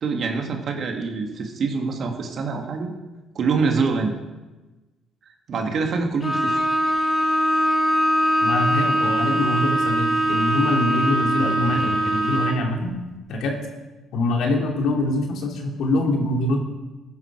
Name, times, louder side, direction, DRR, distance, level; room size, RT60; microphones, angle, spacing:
voice 1, 0.0-2.9 3.3-4.2 5.5-6.6, right 4 dB, 55° right, 3 dB, 2.2 m, -25 dB
Bowed string instrument, 6.2-12.7, right 1 dB, 20° left, 2.2 m, -22 dB
voice 2, 8.4-13.0 13.3-13.6 14.1-16.6, left 2 dB, 70° left, 1 dB, 2.6 m, -24 dB
14.5 x 10.5 x 4.7 m, 1.2 s
cardioid pair, 85°, 0 cm